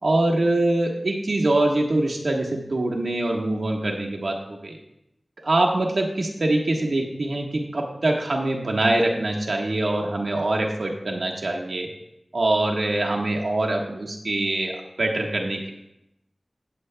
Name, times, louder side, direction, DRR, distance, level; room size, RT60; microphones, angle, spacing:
voice 1, 0.0-4.8 5.4-11.9 12.3-15.7, right 2 dB, 85° right, 0 dB, 1.3 m, -24 dB
17.5 x 7.0 x 2.2 m, 0.85 s
wide cardioid pair, 45°, 0 cm